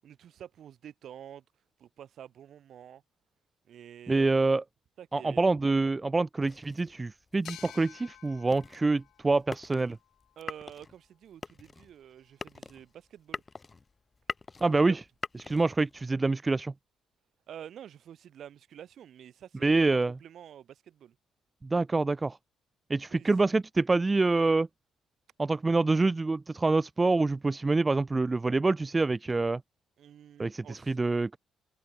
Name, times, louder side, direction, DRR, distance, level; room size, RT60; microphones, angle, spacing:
voice 1, 0.0-1.4 1.8-3.0 3.7-4.3 5.0-5.9 10.4-13.4 14.7-15.0 17.5-21.2 23.1-23.3 30.0-31.0, right 10 dB, 65° right, 8.0 m, -48 dB
voice 2, 4.1-4.6 5.1-10.0 14.6-15.0 15.5-16.7 19.6-20.1 21.6-22.4 22.9-24.7 25.4-29.6 30.4-31.4, right 3 dB, 20° right, 0.4 m, -26 dB
sound 1, 6.4-16.1, left 4 dB, 30° left, 2.3 m, -44 dB
sound 2, 7.4-10.8, left 13 dB, 80° left, 2.6 m, -53 dB
cardioid pair, 90°, 0 cm